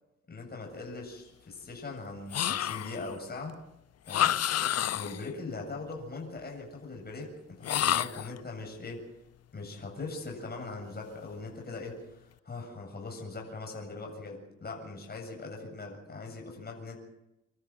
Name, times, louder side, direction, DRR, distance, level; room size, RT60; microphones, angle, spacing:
voice 1, 0.3-3.5 4.0-4.3 4.9-9.1 9.5-17.0, left 3 dB, 30° left, 0 dB, 7.8 m, -41 dB
sound 1, 2.3-3.1 4.1-5.3 7.6-8.4, left 11 dB, 55° left, 0.8 m, -29 dB
27.5 x 13.0 x 9.1 m, 0.87 s
cardioid pair, 90°, 30 cm